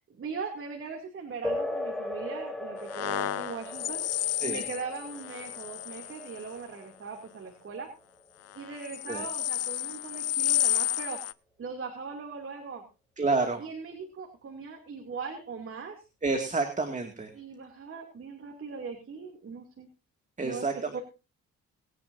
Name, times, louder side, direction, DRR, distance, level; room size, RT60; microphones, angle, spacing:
voice 1, 0.2-4.0 4.4-7.9 8.5-11.2 11.6-12.8 13.6-16.0 17.3-19.9 20.4-20.7 20.9-21.0, right 5 dB, 45° right, 2 dB, 2.8 m, -40 dB
sound 1, 1.4-9.4, left 1 dB, ahead, 3.9 m, -39 dB
sound 2, 2.9-6.5 8.6-11.3, left 12 dB, 55° left, 0.7 m, -31 dB
voice 2, 13.2-13.6 16.2-17.3 20.4-21.0, right 3 dB, 25° right, 4 dB, 2.3 m, -29 dB
22.0 x 10.0 x 2.7 m, 0.31 s
cardioid pair, 90°, 30 cm